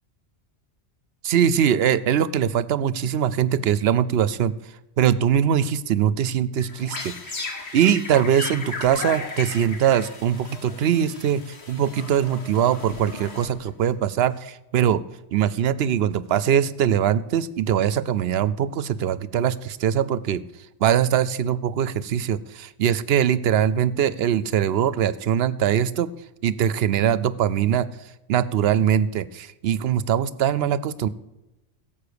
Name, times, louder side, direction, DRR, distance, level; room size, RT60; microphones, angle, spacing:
voice 1, 1.2-4.5 5.0-15.0 15.3-20.4 20.8-26.1 26.4-27.9 28.3-31.1, right 9 dB, 70° right, 17 dB, 0.8 m, -22 dB
sound 1, 6.6-13.9, left 4 dB, 75° left, 1.7 m, -36 dB
16.5 x 7.3 x 6.9 m, 0.98 s
omnidirectional pair, 1.1 m